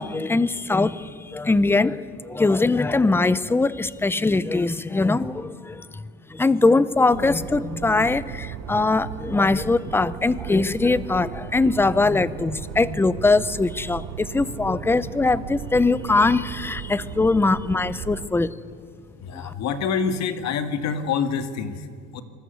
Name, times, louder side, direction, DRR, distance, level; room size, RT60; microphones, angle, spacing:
voice 1, 0.0-6.0 6.3-18.5 19.3-19.5, left 3 dB, 5° left, 17 dB, 0.6 m, -21 dB
sound 1, 7.1-18.2, right 9 dB, 75° right, 1.6 m, -36 dB
voice 2, 19.2-22.2, left 6 dB, 50° left, 9 dB, 2.1 m, -27 dB
26.5 x 21.0 x 8.3 m, 2.2 s
cardioid pair, 135°, 34 cm